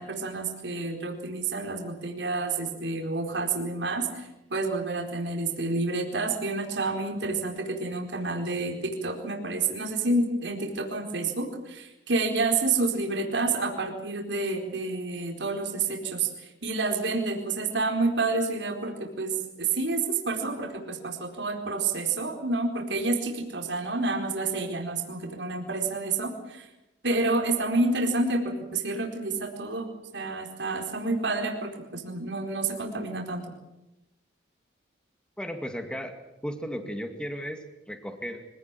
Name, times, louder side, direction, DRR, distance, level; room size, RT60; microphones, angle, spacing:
voice 1, 0.0-19.3 19.6-26.7 27.0-33.4, right 3 dB, 70° right, 2 dB, 4.4 m, -29 dB
voice 2, 35.4-36.1 36.4-38.5, equal, 5° left, 6 dB, 2.1 m, -35 dB
25.5 x 17.5 x 9.1 m, 0.97 s
head